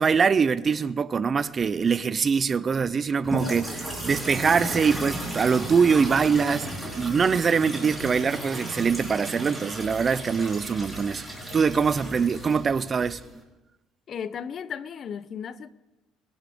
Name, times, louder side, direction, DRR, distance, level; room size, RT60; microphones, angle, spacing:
voice 1, 0.0-11.2 11.5-13.2, right 6 dB, 35° right, 0.5 m, -23 dB
sound 1, 3.2-13.4, right 1 dB, 5° right, 4.1 m, -35 dB
voice 2, 14.1-15.7, left 7 dB, 45° left, 0.6 m, -35 dB
21.5 x 11.5 x 3.6 m
cardioid pair, 105°, 0 cm